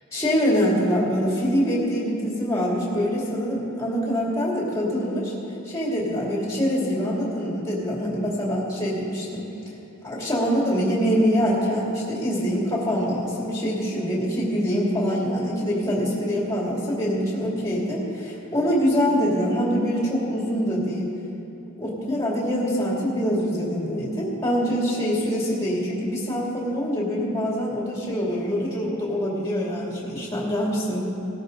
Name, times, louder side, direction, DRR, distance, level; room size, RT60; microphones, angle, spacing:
voice 1, 0.1-5.3 5.6-9.4 10.0-21.1 21.8-31.0, equal, 15° left, -5 dB, 2.7 m, -24 dB
19.0 x 13.5 x 3.9 m, 2.9 s
head